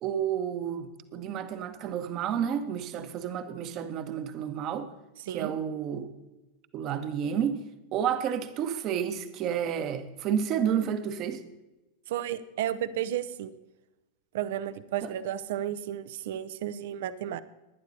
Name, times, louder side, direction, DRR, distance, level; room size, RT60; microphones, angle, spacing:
voice 1, 0.0-4.9 5.3-6.1 6.7-7.6 7.9-11.4 15.0-15.1, right 8 dB, 35° right, 1.1 m, -30 dB
voice 2, 5.2-5.5 12.1-13.5 14.3-17.4, right 11 dB, 55° right, 0.6 m, -33 dB
19.5 x 10.5 x 2.8 m
figure-of-eight pair, 90°, 0 cm